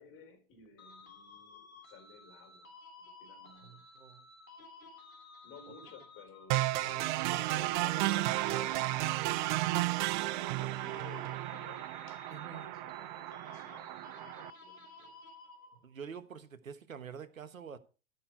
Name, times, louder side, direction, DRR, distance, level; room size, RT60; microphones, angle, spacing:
voice 1, 0.0-3.9 5.4-15.2, left 6 dB, 30° left, 4.1 m, -55 dB
sound 1, 0.8-16.0, left 3 dB, 80° left, 3.4 m, -55 dB
voice 2, 3.6-4.3 6.7-7.1 12.3-12.7 15.8-17.8, right 7 dB, 80° right, 1.4 m, -47 dB
sound 2, 6.5-14.5, right 17 dB, 35° right, 0.6 m, -33 dB
14.5 x 6.6 x 4.5 m
figure-of-eight pair, 100°, 40 cm